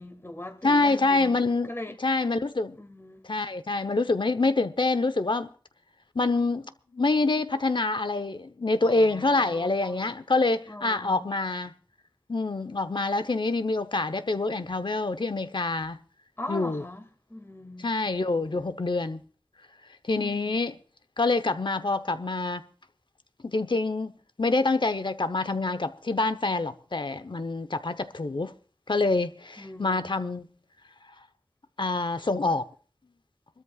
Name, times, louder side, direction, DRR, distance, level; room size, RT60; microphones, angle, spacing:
voice 1, 0.0-1.4 1.7-1.9 2.8-3.2 8.8-10.1 10.7-11.3 16.4-17.9 20.1-20.6 29.6-30.2, left 1 dB, 25° left, 2.2 m, -40 dB
voice 2, 0.6-1.7 2.0-2.8 3.2-5.5 6.1-11.7 12.3-16.0 16.5-16.8 17.8-19.2 20.0-20.7 21.2-22.6 23.4-24.1 24.4-28.5 28.9-30.5 31.8-32.7, left 3 dB, 55° left, 0.9 m, -26 dB
26.5 x 13.0 x 2.4 m
wide cardioid pair, 50°, 10 cm